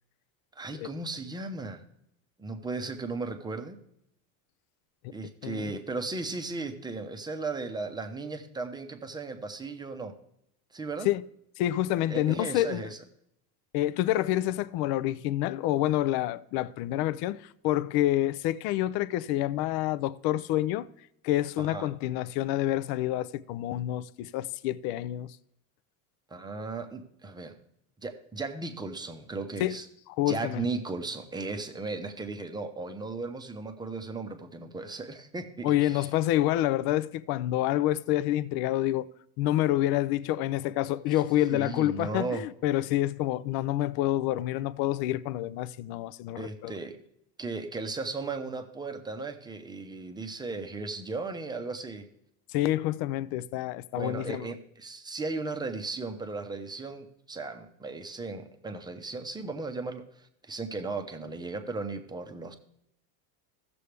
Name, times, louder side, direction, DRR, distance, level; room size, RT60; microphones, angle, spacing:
voice 1, 0.5-1.8 2.4-3.8 5.1-10.1 10.7-11.1 12.1-13.0 21.6-21.9 26.3-27.6 28.0-29.9 30.3-36.1 41.5-42.4 46.4-47.0 47.4-52.1 53.9-62.6, right 3 dB, 10° right, 0.7 m, -36 dB
voice 2, 11.6-12.9 13.7-20.9 21.2-25.4 29.6-29.8 30.2-30.6 35.6-39.1 39.4-46.7 52.5-54.5, left 14 dB, 55° left, 0.5 m, -28 dB
15.5 x 6.9 x 3.3 m
cardioid pair, 140°, 46 cm